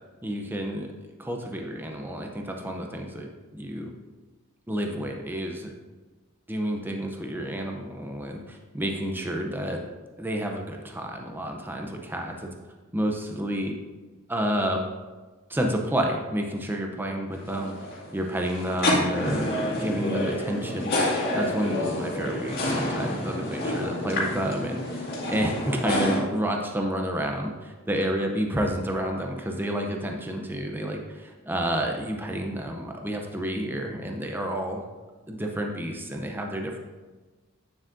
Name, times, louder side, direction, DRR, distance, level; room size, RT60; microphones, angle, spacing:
voice 1, 0.2-0.9 1.2-3.9 4.7-5.7 6.5-9.8 10.2-12.5 12.9-13.7 14.3-14.8 15.5-17.7 18.1-20.9 21.3-34.9 35.3-36.8, right 1 dB, 10° right, 2 dB, 0.6 m, -30 dB
sound 1, 17.3-26.2, left 1 dB, 45° left, 2.1 m, -28 dB
9.1 x 7.2 x 2.6 m, 1.3 s
head